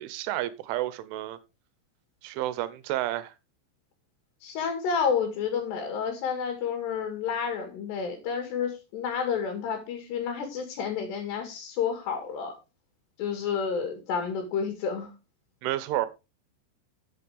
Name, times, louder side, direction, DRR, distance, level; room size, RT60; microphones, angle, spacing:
voice 1, 0.0-1.4 2.2-3.3 15.6-16.1, right 14 dB, 90° right, 3.4 m, -30 dB
voice 2, 4.4-12.5 13.2-15.1, left 6 dB, 65° left, 4.1 m, -30 dB
13.0 x 7.8 x 3.5 m
omnidirectional pair, 5.4 m